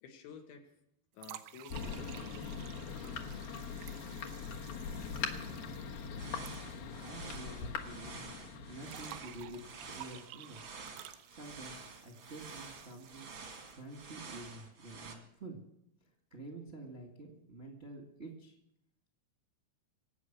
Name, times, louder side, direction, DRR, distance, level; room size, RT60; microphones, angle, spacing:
voice 1, 0.0-0.7 1.1-3.4, left 6 dB, 80° left, 3 dB, 4.2 m, -52 dB
sound 1, 1.2-7.4 7.6-7.7 8.8-13.9, right 14 dB, 90° right, 3.2 m, -53 dB
Thunder, 1.7-10.0, left 6 dB, 65° left, 2.7 m, -42 dB
sound 2, 6.2-15.1, right 4 dB, 50° right, 1.5 m, -49 dB
voice 2, 6.7-8.3 8.7-10.6 11.3-11.8 12.0-13.3 13.7-15.6 16.0-18.6, right 2 dB, 25° right, 1 dB, 1.2 m, -49 dB
25.0 x 8.6 x 6.3 m, 0.80 s
omnidirectional pair, 5.3 m